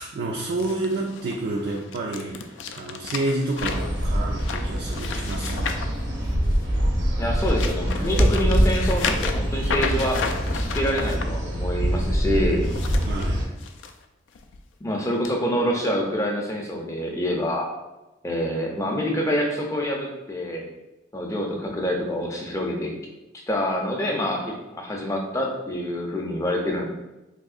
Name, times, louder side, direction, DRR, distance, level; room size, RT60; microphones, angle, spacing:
voice 1, 0.0-5.9 13.0-13.5, right 2 dB, 60° right, -2 dB, 0.3 m, -29 dB
sound 1, 0.6-6.7 7.2-11.2 12.5-13.9 14.3-14.6 15.2-15.3, left 5 dB, 90° left, 0.3 m, -33 dB
sound 2, 3.6-13.4, equal, 75° right, 0.7 m, -24 dB
voice 2, 7.2-10.2 10.5-12.6 14.8-17.7 18.2-20.6 21.1-22.9 23.5-26.8, equal, 15° left, 0 dB, 0.4 m, -26 dB
3.5 x 2.7 x 2.4 m, 0.99 s
head